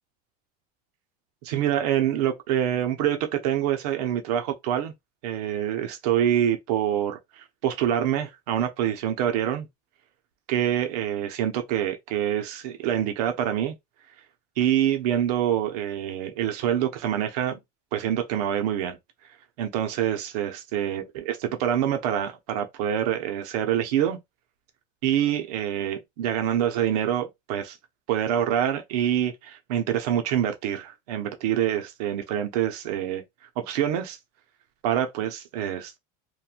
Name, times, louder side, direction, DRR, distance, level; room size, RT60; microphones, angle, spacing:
voice 1, 1.4-4.9 5.2-9.7 10.5-13.7 14.6-17.6 17.9-19.0 19.6-24.2 25.0-27.8 28.1-33.2 33.6-34.2 34.8-36.0, right 10 dB, 75° right, 0.6 m, -26 dB
3.0 x 2.2 x 2.3 m
cardioid pair, 165°, 20 cm